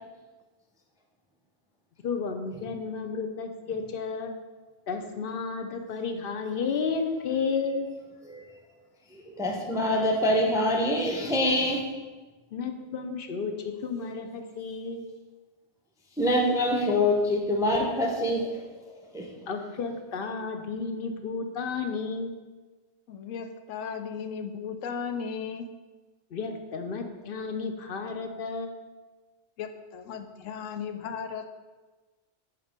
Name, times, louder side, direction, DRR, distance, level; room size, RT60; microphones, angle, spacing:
voice 1, 2.0-4.3 4.9-7.9 12.5-15.1 19.5-22.3 26.3-28.7, left 5 dB, 55° left, 5 dB, 0.7 m, -32 dB
voice 2, 9.1-11.8 16.2-18.6 19.1-19.3, left 1 dB, 5° right, 0 dB, 0.5 m, -25 dB
voice 3, 23.1-25.7 29.6-31.5, left 6 dB, 85° left, 8 dB, 0.9 m, -36 dB
7.5 x 2.9 x 5.1 m, 1.3 s
omnidirectional pair, 1.3 m